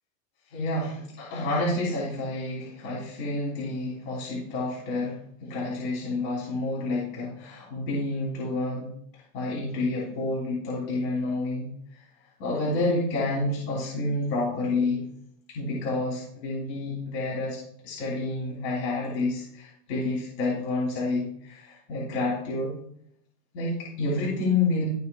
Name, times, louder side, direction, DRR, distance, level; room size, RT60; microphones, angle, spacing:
voice 1, 0.5-8.9 9.3-11.7 12.4-15.0 15.5-17.6 17.8-22.7 23.5-24.9, left 2 dB, 45° left, -6 dB, 3.0 m, -29 dB
13.5 x 5.0 x 2.3 m, 0.69 s
supercardioid pair, 180°, 45 cm